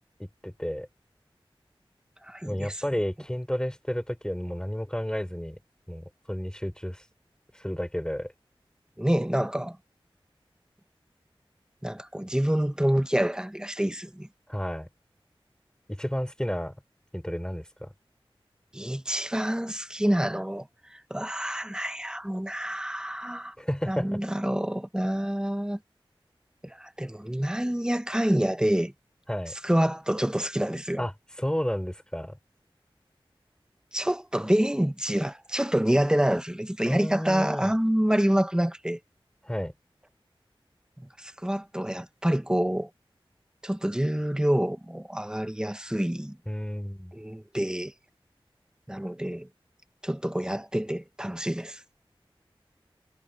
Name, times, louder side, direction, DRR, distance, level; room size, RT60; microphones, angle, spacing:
voice 1, 0.2-0.9 2.4-5.6 5.9-7.0 7.5-8.3 14.5-14.9 15.9-16.8 17.1-17.9 23.6-24.2 29.3-29.5 31.0-32.4 36.9-37.7 39.4-39.7 46.5-47.1, equal, 10° left, 5.5 m, -32 dB
voice 2, 2.2-2.8 9.0-9.8 11.8-14.3 18.7-23.5 23.9-25.8 26.6-28.9 29.5-31.0 33.9-39.0 41.2-42.9 43.6-46.4 47.1-47.9 48.9-49.5 50.0-51.8, equal, 10° right, 1.0 m, -27 dB
wide cardioid pair, 55°, 9 cm